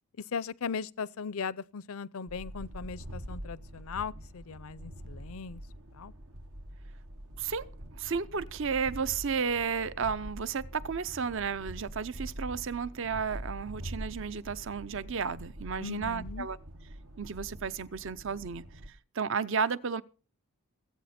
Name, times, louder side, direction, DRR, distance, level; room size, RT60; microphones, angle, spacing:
voice 1, 0.3-5.6 5.9-6.1 15.8-16.5, left 5 dB, 70° left, 0.5 m, -38 dB
sound 1, 2.3-18.9, equal, 80° right, 1.4 m, -44 dB
voice 2, 7.4-16.6 17.2-20.0, right 6 dB, 55° right, 0.6 m, -33 dB
21.0 x 8.5 x 4.3 m
head